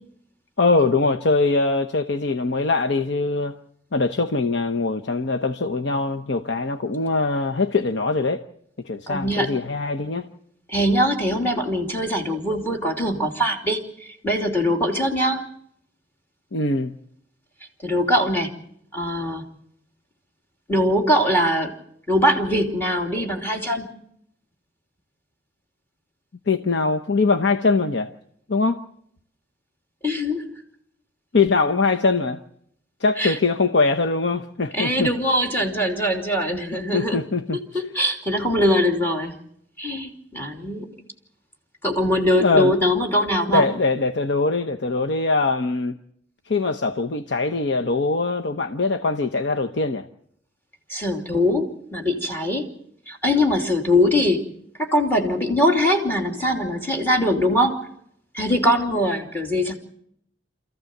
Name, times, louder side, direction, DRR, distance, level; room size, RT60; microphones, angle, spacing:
voice 1, 0.6-3.6 3.9-8.4 8.8-10.3 16.5-16.9 26.5-28.1 28.5-28.8 31.3-32.4 33.0-35.1 36.9-37.6 42.4-42.7 43.5-46.0 46.5-50.1, left 3 dB, 65° left, 0.9 m, -22 dB
voice 2, 9.1-9.6 10.7-15.4 17.8-18.5 18.9-19.4 20.7-21.7 22.1-23.9 30.0-30.6 33.2-33.4 34.7-37.2 37.7-39.4 39.8-40.9 41.8-43.7 50.9-52.7 53.1-54.4 54.8-57.8 58.3-59.8, equal, 10° left, 3.0 m, -22 dB
28.0 x 14.5 x 7.9 m
head